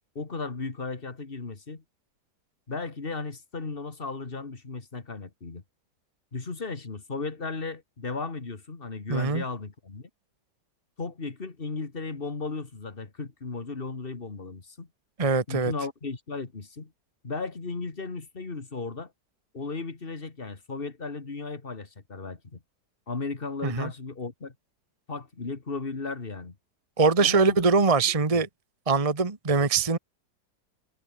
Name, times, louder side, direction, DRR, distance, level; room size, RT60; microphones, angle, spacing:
voice 1, 0.2-1.8 2.7-5.6 6.3-10.1 11.0-14.9 15.5-16.9 17.2-19.1 19.5-22.6 23.1-24.5 25.1-26.6 27.2-27.6 28.0-28.4, left 4 dB, 30° left, 2.3 m, -35 dB
voice 2, 9.1-9.4 15.2-15.7 23.6-23.9 27.0-28.5 28.9-30.0, right 4 dB, 20° right, 1.4 m, -22 dB
omnidirectional pair, 1.8 m